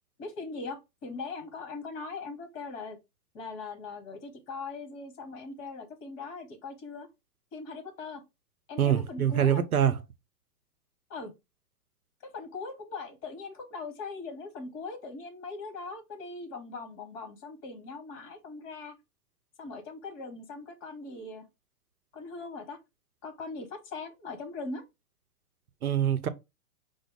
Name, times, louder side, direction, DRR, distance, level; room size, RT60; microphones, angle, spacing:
voice 1, 0.2-3.0 3.3-7.1 7.5-8.2 8.7-9.6 11.1-11.3 12.2-18.9 19.6-21.5 22.1-22.8 23.2-24.8, left 3 dB, 30° left, 1.3 m, -40 dB
voice 2, 8.8-10.0 25.8-26.3, right 9 dB, 75° right, 0.7 m, -24 dB
5.0 x 2.0 x 4.7 m
figure-of-eight pair, 115°, 44 cm